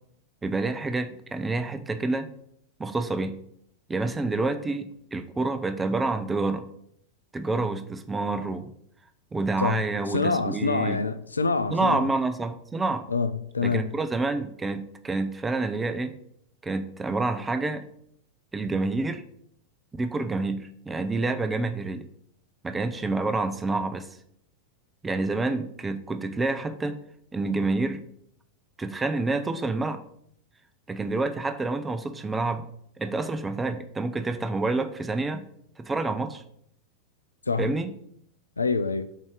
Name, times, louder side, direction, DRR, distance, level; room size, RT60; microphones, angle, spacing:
voice 1, 0.4-2.3 2.8-3.3 3.9-6.7 7.3-8.7 9.3-11.0 11.7-13.1 13.6-16.1 16.6-17.8 18.5-19.2 20.0-22.1 22.6-24.1 25.0-27.0 27.3-28.0 28.8-30.0 30.9-32.7 33.0-35.4 35.8-36.4 37.6-37.9, right 3 dB, 15° right, 0.5 m, -28 dB
voice 2, 10.1-12.1 13.1-13.9 37.5-37.7 38.6-39.1, left 4 dB, 80° left, 0.3 m, -26 dB
8.0 x 2.7 x 4.7 m
figure-of-eight pair, 90°, 0 cm